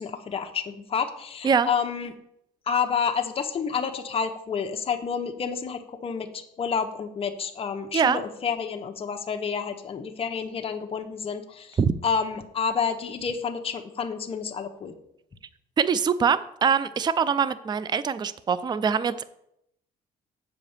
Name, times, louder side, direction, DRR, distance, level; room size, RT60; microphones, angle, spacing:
voice 1, 0.0-2.1 2.7-14.9, left 6 dB, 35° left, 4 dB, 1.0 m, -29 dB
voice 2, 15.8-19.2, right 6 dB, 25° right, 15 dB, 0.4 m, -23 dB
7.6 x 4.9 x 7.2 m, 0.77 s
cardioid pair, 110°, 17 cm